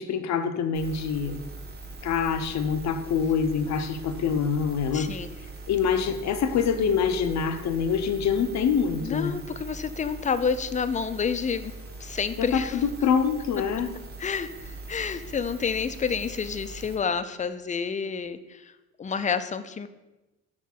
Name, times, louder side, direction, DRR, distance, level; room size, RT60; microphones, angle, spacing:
voice 1, 0.0-1.4 2.0-5.2 5.7-9.3 12.4-13.9, left 6 dB, 65° left, 9 dB, 0.6 m, -25 dB
sound 1, 0.7-17.0, right 3 dB, 35° right, 1.3 m, -42 dB
voice 2, 4.9-5.3 9.0-11.7 12.0-12.8 14.2-18.7 19.0-19.9, left 6 dB, 25° left, 12 dB, 0.4 m, -29 dB
5.2 x 3.6 x 5.7 m, 1.0 s
cardioid pair, 90°, 30 cm